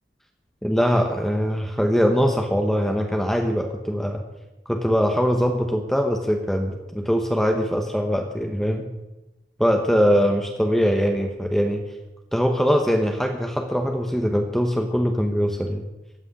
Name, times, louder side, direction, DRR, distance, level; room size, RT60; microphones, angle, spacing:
voice 1, 0.6-4.2 4.7-8.9 9.6-11.8 12.3-15.8, equal, ahead, 3 dB, 0.9 m, -22 dB
15.5 x 6.3 x 9.8 m, 1.0 s
head